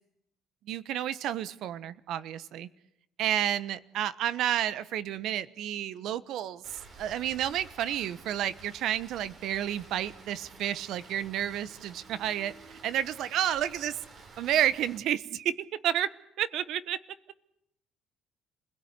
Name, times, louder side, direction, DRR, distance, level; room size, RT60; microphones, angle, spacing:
voice 1, 0.7-2.7 3.2-6.6 7.0-12.5 12.8-14.0 14.4-15.5 15.8-16.1 16.4-17.0, right 11 dB, 70° right, 16 dB, 1.1 m, -30 dB
Rain, 6.6-15.0, right 4 dB, 40° right, 5.6 m, -51 dB
28.5 x 17.0 x 9.7 m, 0.80 s
cardioid pair, 115°, 0 cm